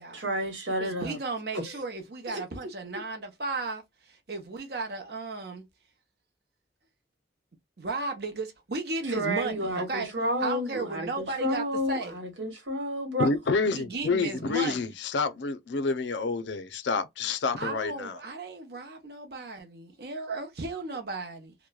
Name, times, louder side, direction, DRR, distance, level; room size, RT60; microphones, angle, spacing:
voice 1, 0.1-1.2 1.5-1.8 2.3-2.7 9.0-13.3, equal, 85° right, 1.3 m, -31 dB
voice 2, 0.8-5.6 7.8-10.1 10.4-12.2 13.6-14.9 17.6-21.5, right 3 dB, 55° right, 0.8 m, -35 dB
voice 3, 13.2-18.2, left 4 dB, 75° left, 0.5 m, -28 dB
3.0 x 2.2 x 2.2 m
head